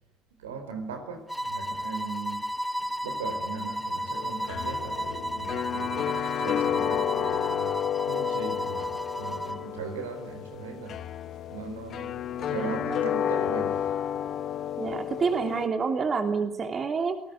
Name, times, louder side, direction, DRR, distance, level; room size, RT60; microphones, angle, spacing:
voice 1, 0.4-2.4 3.0-7.7 8.1-11.0 11.5-13.9, right 4 dB, 80° right, 6 dB, 4.4 m, -39 dB
sound 1, 1.3-9.7, equal, ahead, 1.3 m, -34 dB
sound 2, 4.1-15.7, left 9 dB, 50° left, 1.4 m, -31 dB
voice 2, 12.6-13.3 14.8-17.2, right 5 dB, 35° right, 5 dB, 3.2 m, -28 dB
27.5 x 19.0 x 9.6 m, 0.80 s
figure-of-eight pair, 55°, 0 cm